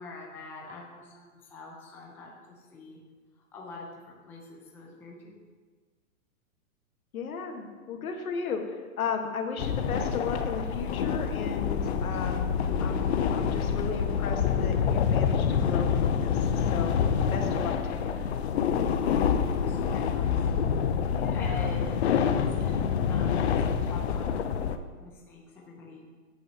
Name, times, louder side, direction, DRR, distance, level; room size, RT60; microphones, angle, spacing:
voice 1, 0.0-3.0 3.5-5.4 11.9-12.5 19.4-20.5 21.3-26.0, left 2 dB, 5° left, -3 dB, 0.6 m, -45 dB
voice 2, 7.1-12.5 12.8-17.0 17.3-18.2 21.1-21.7, left 5 dB, 75° left, 4 dB, 1.7 m, -35 dB
sound 1, 9.6-24.8, left 7 dB, 50° left, 0.7 m, -27 dB
14.5 x 8.5 x 2.9 m, 1.5 s
hypercardioid pair, 160°, 42 cm